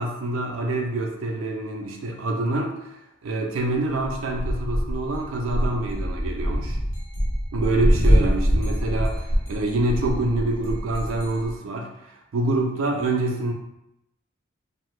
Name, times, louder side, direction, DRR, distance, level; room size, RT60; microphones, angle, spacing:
voice 1, 0.0-6.8 7.5-13.5, right 2 dB, 80° right, 1 dB, 0.4 m, -26 dB
sound 1, 4.0-11.5, equal, 70° left, 0.7 m, -24 dB
2.7 x 2.2 x 3.1 m, 0.85 s
head